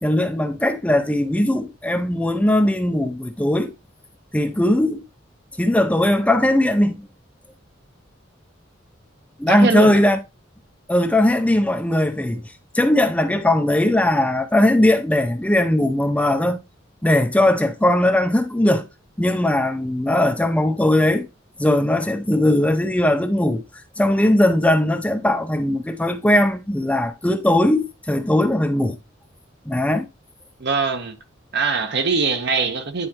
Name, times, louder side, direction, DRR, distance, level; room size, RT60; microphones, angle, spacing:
voice 1, 0.0-3.7 4.3-5.0 5.6-7.1 9.4-10.2 10.9-12.4 12.7-16.6 17.0-18.9 19.2-21.3 21.6-23.6 24.0-29.0 29.7-30.1, left 1 dB, 5° left, 0.5 m, -19 dB
voice 2, 9.5-10.0 30.6-31.2 31.5-33.1, right 4 dB, 60° right, 1.0 m, -22 dB
9.6 x 4.3 x 2.9 m
head